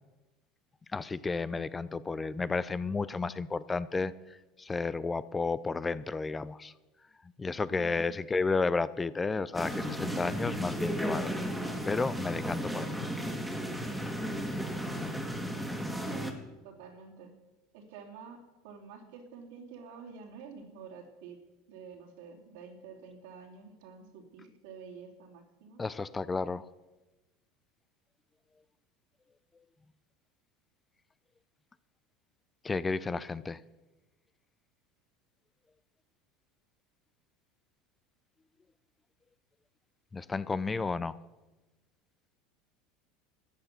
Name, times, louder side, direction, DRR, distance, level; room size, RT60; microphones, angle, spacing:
voice 1, 0.9-4.1 4.6-6.7 7.4-11.3 11.8-12.8 25.8-26.7 32.6-33.6 40.1-41.2, left 4 dB, 20° left, 17 dB, 0.5 m, -32 dB
voice 2, 7.7-8.1 16.0-16.4 16.6-17.3 17.7-18.4 18.6-21.4 21.7-25.8, right 5 dB, 75° right, 1 dB, 2.7 m, -49 dB
sound 1, 9.5-16.3, equal, 5° right, 2.2 m, -34 dB
13.5 x 9.0 x 6.7 m, 1.1 s
hypercardioid pair, 95°, 0 cm